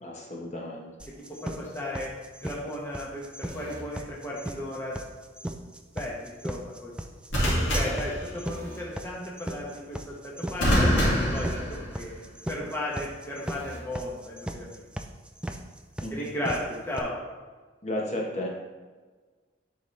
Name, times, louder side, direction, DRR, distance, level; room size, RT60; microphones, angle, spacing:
voice 1, 0.0-0.9 7.8-8.0 16.0-16.3 17.8-18.5, left 1 dB, 35° left, -2 dB, 1.1 m, -33 dB
sound 1, 1.0-17.0, right 1 dB, 5° right, 0.3 m, -37 dB
voice 2, 1.4-2.1 2.4-5.0 5.9-6.9 7.6-14.9 16.1-17.1, left 1 dB, 10° left, -5 dB, 0.9 m, -35 dB
sound 2, 3.4-3.8 7.3-8.8 10.6-12.3 13.5-13.8, equal, 75° left, 2.3 m, -26 dB
11.0 x 4.1 x 3.3 m, 1.4 s
head